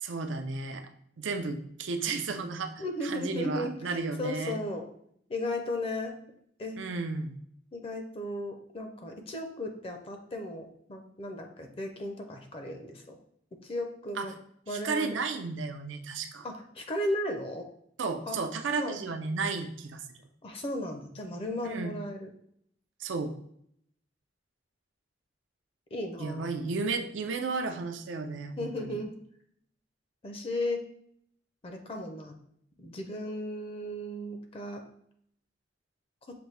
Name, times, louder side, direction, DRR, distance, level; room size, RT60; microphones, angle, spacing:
voice 1, 0.0-0.9 1.2-4.6 6.8-7.4 14.2-14.3 14.7-16.5 18.0-20.0 21.6-21.9 23.0-23.3 26.2-29.0, right 4 dB, 90° right, 7 dB, 0.5 m, -33 dB
voice 2, 2.8-4.8 5.3-6.2 6.6-6.8 7.7-13.2 13.6-14.3 14.7-15.1 16.4-17.7 18.3-18.4 18.8-19.0 20.4-22.3 25.9-26.5 28.6-29.1 30.2-30.8 31.6-32.4 32.8-34.8, left 1 dB, 30° left, 4 dB, 0.5 m, -35 dB
5.9 x 2.6 x 3.2 m, 0.68 s
head